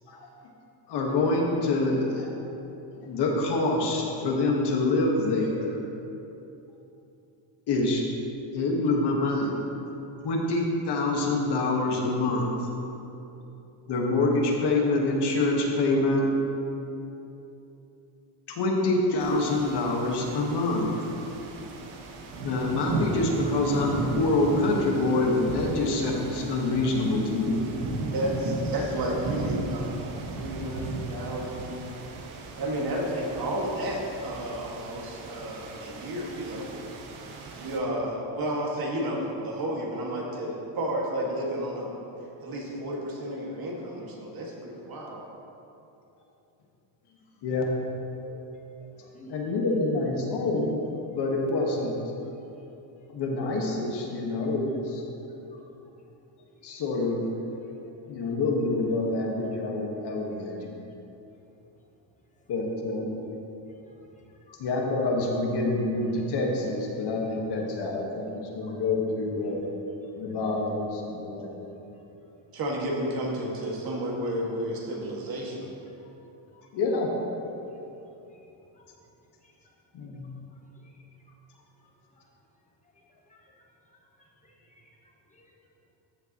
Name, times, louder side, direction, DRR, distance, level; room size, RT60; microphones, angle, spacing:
voice 1, 0.9-2.3 2.9-5.8 7.7-8.3 8.5-9.5 10.2-12.7 13.9-16.2 18.5-20.9 22.4-27.6 28.0-28.1 47.4-47.6 48.2-48.4 49.3-50.8 51.1-51.9 53.1-55.0 56.6-57.2 58.1-60.8 62.5-63.1 64.6-69.6 70.2-71.8 76.7-77.1 79.9-80.3, left 2 dB, 55° left, 0 dB, 1.5 m, -26 dB
sound 1, 19.2-37.8, right 3 dB, 80° right, 1.3 m, -35 dB
voice 2, 28.1-29.9 30.3-31.8 32.6-36.7 37.5-41.9 42.4-45.2 72.5-75.7, right 1 dB, 45° right, -2 dB, 1.9 m, -31 dB
voice 3, 49.0-49.3 63.6-63.9 64.5-64.6 68.6-68.7 74.9-75.0 76.0-76.1 76.5-76.6 78.3-78.4 78.8-78.9 83.3-83.4 84.4-84.8 85.3-85.4, equal, 15° left, -2 dB, 1.4 m, -55 dB
14.0 x 6.9 x 3.0 m, 2.9 s
cardioid pair, 125°, 48 cm